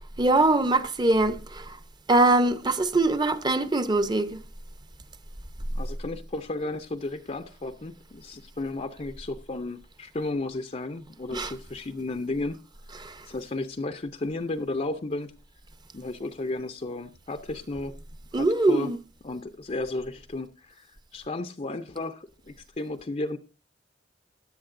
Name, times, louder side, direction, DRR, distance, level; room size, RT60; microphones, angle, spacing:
voice 1, 0.2-1.6 2.1-4.3 11.3-11.5 13.0-13.1 18.3-19.0, right 2 dB, 25° right, 0.8 m, -22 dB
voice 2, 5.7-12.6 13.2-15.3 15.9-17.9 18.3-18.9 19.2-23.4, left 2 dB, 35° left, 0.6 m, -33 dB
16.5 x 10.5 x 2.6 m
head